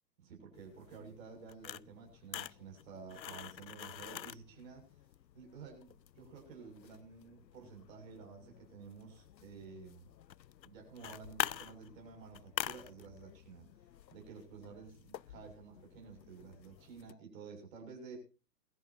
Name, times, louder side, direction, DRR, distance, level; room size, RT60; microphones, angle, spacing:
voice 1, 0.2-4.8 5.3-10.0 10.6-13.7 14.1-18.2, right 5 dB, 50° right, 1 dB, 7.2 m, -52 dB
sound 1, 0.5-17.1, left 11 dB, 85° left, 0.6 m, -47 dB
21.5 x 14.0 x 2.8 m, 0.33 s
figure-of-eight pair, 120°, 50 cm